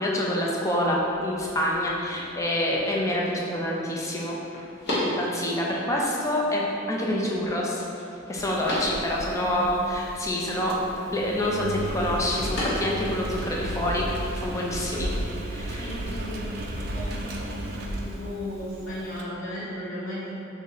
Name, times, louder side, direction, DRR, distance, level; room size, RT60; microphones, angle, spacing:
voice 1, 0.0-4.4 5.0-6.6 6.9-7.8 8.3-10.7 11.1-14.0 14.4-15.1 15.5-16.1, left 1 dB, 15° left, -3 dB, 0.4 m, -27 dB
sound 1, 0.8-16.3, equal, 55° left, 0.9 m, -38 dB
Engine, 8.3-19.2, right 1 dB, 55° right, 0.3 m, -34 dB
voice 2, 9.1-9.7 10.4-10.7 15.8-20.3, left 1 dB, 90° left, -14 dB, 0.9 m, -36 dB
2.8 x 2.6 x 3.9 m, 2.7 s
head